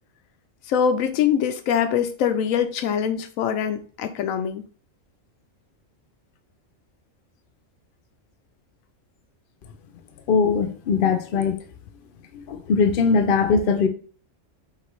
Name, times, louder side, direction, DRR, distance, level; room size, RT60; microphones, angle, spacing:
voice 1, 0.7-4.6, left 8 dB, 90° left, 8 dB, 1.0 m, -23 dB
voice 2, 10.3-11.6 12.5-13.9, left 5 dB, 55° left, 6 dB, 0.7 m, -20 dB
5.6 x 2.6 x 3.1 m, 0.41 s
omnidirectional pair, 1.3 m